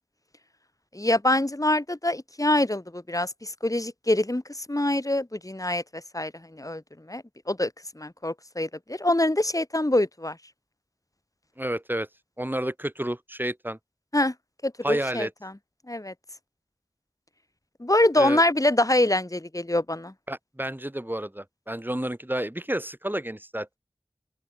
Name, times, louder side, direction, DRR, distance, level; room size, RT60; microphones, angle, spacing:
voice 1, 0.9-10.4 14.1-14.3 14.6-15.5 15.9-16.1 17.8-20.1, left 1 dB, 30° left, 3.7 m, -25 dB
voice 2, 11.6-12.1 12.4-13.8 14.8-15.3 18.2-18.4 20.3-23.8, right 1 dB, 15° right, 3.5 m, -30 dB
open air
wide cardioid pair, 45°, 12 cm